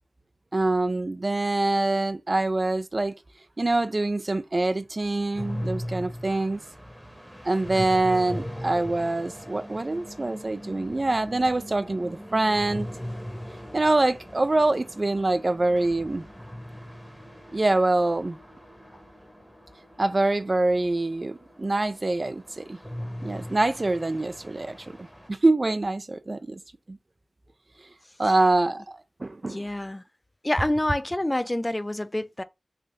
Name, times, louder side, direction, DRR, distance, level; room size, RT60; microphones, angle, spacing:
voice 1, 0.5-3.1 3.6-6.6 7.4-12.9 13.7-16.3 17.5-18.4 20.0-22.8 23.2-25.0 25.3-26.6 26.9-27.0 28.2-29.6, right 2 dB, 45° right, 0.4 m, -25 dB
sound 1, 5.3-25.3, equal, 5° right, 0.9 m, -40 dB
voice 2, 29.5-30.0 30.4-32.4, left 1 dB, 25° left, 0.4 m, -27 dB
3.3 x 2.6 x 3.7 m
wide cardioid pair, 50°, 0 cm